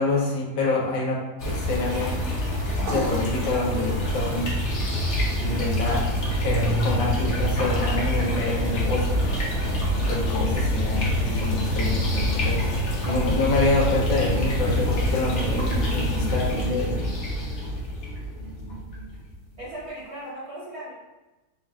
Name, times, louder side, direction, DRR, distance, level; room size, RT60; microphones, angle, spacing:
voice 1, 0.0-2.6 2.9-4.5 5.4-6.0 6.4-9.2 10.0-17.2, left 2 dB, 75° left, -3 dB, 1.5 m, -27 dB
sound 1, 1.4-19.6, equal, 55° left, 0.8 m, -26 dB
sound 2, 2.4-18.9, right 1 dB, 85° right, 0.7 m, -45 dB
voice 2, 19.6-20.9, right 1 dB, 45° right, -8 dB, 1.0 m, -37 dB
3.9 x 2.4 x 3.3 m, 1.1 s
omnidirectional pair, 2.1 m